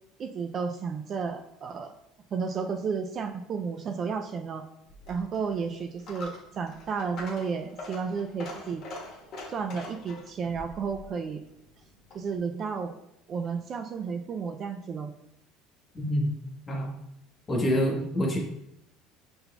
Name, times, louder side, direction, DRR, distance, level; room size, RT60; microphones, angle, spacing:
voice 1, 0.2-1.9 2.3-4.7 5.1-8.8 9.5-11.4 12.1-13.0 13.3-15.1, right 5 dB, 35° right, 6 dB, 0.3 m, -32 dB
Coin (dropping), 4.9-12.4, left 2 dB, 50° left, 1.3 m, -44 dB
voice 2, 15.9-16.3 16.7-16.9 17.5-18.4, equal, 25° left, -1 dB, 1.2 m, -26 dB
5.6 x 3.9 x 2.3 m, 0.80 s
cardioid pair, 130°, 0 cm